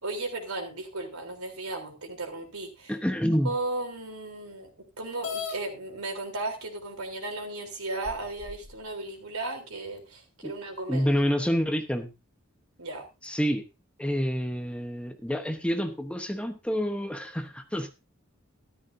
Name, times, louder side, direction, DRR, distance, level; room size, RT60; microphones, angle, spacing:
voice 1, 0.0-2.9 3.4-4.7 5.0-11.1 12.8-13.0, right 2 dB, 85° right, 3 dB, 3.6 m, -35 dB
voice 2, 2.9-3.5 10.4-10.5 10.9-12.1 13.2-13.6 14.0-17.9, equal, 5° left, 7 dB, 1.0 m, -28 dB
sound 1, 5.2-5.6 6.6-6.7 7.3-7.4 8.0-8.7, left 5 dB, 70° left, 4.0 m, -36 dB
13.5 x 13.0 x 2.7 m, 0.27 s
head